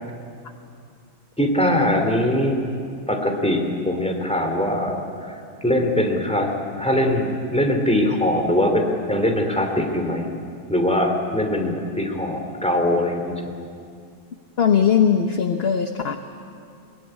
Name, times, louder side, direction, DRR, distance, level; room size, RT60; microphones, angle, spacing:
voice 1, 1.4-2.6 3.1-5.3 5.6-6.5 6.8-10.3 10.7-13.4, left 1 dB, 5° left, 3 dB, 2.9 m, -22 dB
voice 2, 14.6-16.2, left 7 dB, 45° left, 6 dB, 1.1 m, -19 dB
22.5 x 21.0 x 10.0 m, 2.3 s
omnidirectional pair, 1.6 m